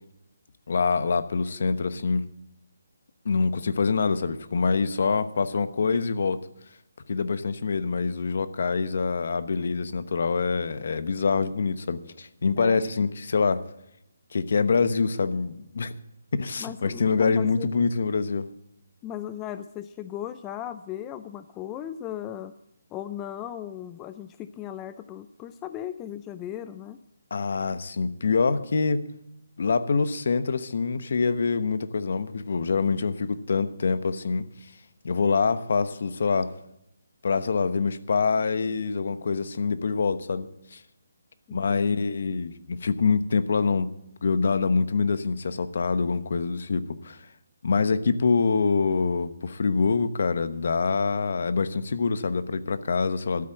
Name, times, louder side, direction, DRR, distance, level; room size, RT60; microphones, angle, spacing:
voice 1, 0.7-2.2 3.2-6.4 7.1-13.6 14.3-15.9 16.3-18.5 27.3-29.0 29.6-34.4 35.0-36.5 37.2-40.8 41.5-43.9 44.2-47.2 47.6-53.5, left 4 dB, 55° left, 13 dB, 1.0 m, -25 dB
voice 2, 12.6-12.9 16.6-17.7 19.0-22.5 22.9-27.0 41.5-42.0, left 11 dB, 15° left, 11 dB, 0.4 m, -37 dB
12.5 x 8.6 x 7.7 m, 0.81 s
hypercardioid pair, 170°, 0 cm